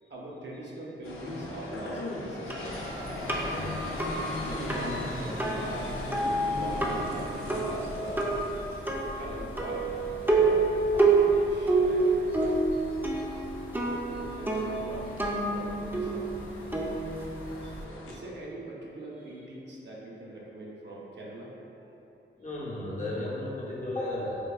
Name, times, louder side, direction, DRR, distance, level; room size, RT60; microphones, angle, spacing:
voice 1, 0.0-2.8 4.4-5.9 6.5-8.2 9.2-10.0 10.2-12.1 14.2-16.3 17.6-21.5 21.8-21.9, right 1 dB, 55° right, -5 dB, 0.7 m, -42 dB
sound 1, 1.0-18.2, left 1 dB, 85° left, 0.4 m, -40 dB
sound 2, 2.5-17.8, right 3 dB, 10° right, 0.4 m, -28 dB
voice 2, 3.5-3.8 16.7-16.8 22.4-24.5, left 1 dB, 40° left, -6 dB, 0.7 m, -34 dB
4.4 x 2.2 x 2.3 m, 3.0 s
cardioid pair, 60°, 21 cm